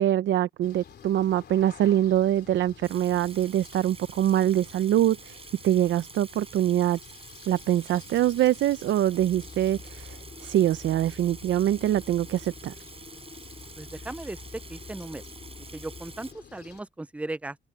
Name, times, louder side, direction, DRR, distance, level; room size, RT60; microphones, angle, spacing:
voice 1, 0.0-7.0 7.5-12.7, right 12 dB, 70° right, 0.7 m, -24 dB
sound 1, 0.6-16.8, left 8 dB, 55° left, 3.6 m, -51 dB
Water tap faucet / Sink (filling or washing), 2.8-16.3, right 4 dB, 30° right, 4.9 m, -48 dB
sound 2, 9.2-16.4, left 4 dB, 30° left, 5.0 m, -47 dB
voice 2, 13.8-14.4 14.7-15.2 15.7-17.6, right 2 dB, 5° right, 0.5 m, -37 dB
cardioid pair, 90°, 20 cm